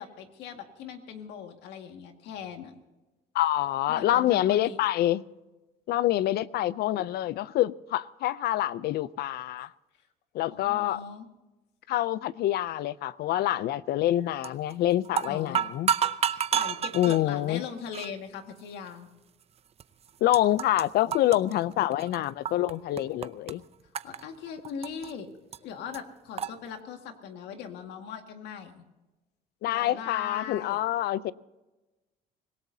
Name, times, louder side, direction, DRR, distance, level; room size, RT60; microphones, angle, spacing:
voice 1, 0.0-2.7 3.9-4.8 10.5-11.3 15.3-15.6 16.2-19.1 24.0-25.3 25.6-28.8 29.7-30.8, left 7 dB, 85° left, 2.0 m, -40 dB
voice 2, 3.3-5.2 5.9-9.7 10.3-11.0 11.9-15.9 16.9-17.6 20.2-23.6 29.6-31.3, left 14 dB, 70° left, 0.5 m, -26 dB
sound 1, 14.4-14.7 15.0-17.2 17.9-18.1 18.9-19.0 19.8-19.9 20.1-20.8 21.1-22.7 23.0-23.5 23.9-25.1 25.5-25.6 25.9-26.0 26.4-26.5, right 8 dB, 35° right, 0.6 m, -29 dB
25.5 x 17.0 x 2.8 m
cardioid pair, 110°, 17 cm